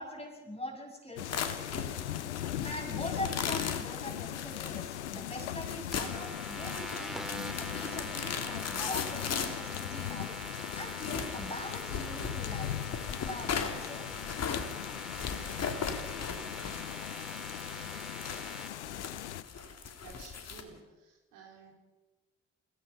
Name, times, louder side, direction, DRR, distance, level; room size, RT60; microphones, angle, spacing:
voice 1, 0.0-1.9 2.6-12.7 13.2-14.1, left 1 dB, 15° left, 1 dB, 8.0 m, -42 dB
sound 1, 1.2-19.4, left 12 dB, 80° left, 0.7 m, -39 dB
sound 2, 1.3-20.6, left 6 dB, 50° left, 2.6 m, -38 dB
sound 3, 5.9-18.7, equal, ahead, 2.9 m, -44 dB
voice 2, 20.0-21.7, right 5 dB, 65° right, 0 dB, 4.7 m, -53 dB
29.5 x 17.5 x 5.4 m, 1.1 s
figure-of-eight pair, 45°, 34 cm